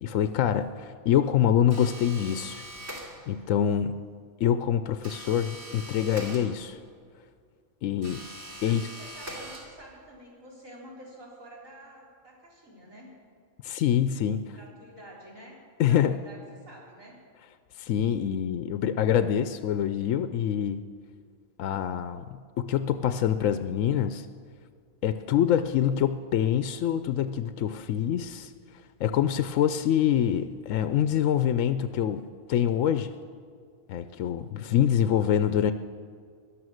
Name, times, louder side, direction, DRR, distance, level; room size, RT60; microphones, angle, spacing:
voice 1, 0.0-2.6 3.3-4.0 4.4-6.8 7.8-8.2 8.6-8.9 13.6-14.4 15.8-16.2 17.8-20.8 21.6-24.3 25.0-28.5 29.0-32.2 32.5-33.1 33.9-35.7, left 9 dB, 70° left, 10 dB, 0.9 m, -25 dB
sound 1, 1.7-3.5 5.0-6.9 8.0-10.1, right 1 dB, 50° right, 3.1 m, -42 dB
voice 2, 8.6-13.2 14.5-15.6 15.8-17.2, right 1 dB, 70° right, -5 dB, 4.4 m, -49 dB
17.5 x 11.5 x 6.4 m, 2.1 s
omnidirectional pair, 1.5 m